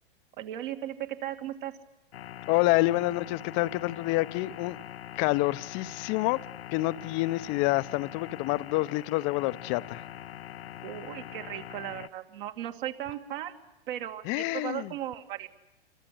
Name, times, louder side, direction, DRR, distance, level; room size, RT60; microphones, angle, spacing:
voice 1, 0.4-1.7 10.8-13.5 13.9-15.5, right 12 dB, 55° right, 2.7 m, -36 dB
sound 1, 2.1-12.1, left 11 dB, 75° left, 0.9 m, -43 dB
voice 2, 2.5-4.8 5.1-6.4 6.7-10.0 14.3-14.9, left 19 dB, 40° left, 0.9 m, -27 dB
28.0 x 23.5 x 7.9 m
hypercardioid pair, 115°, 30 cm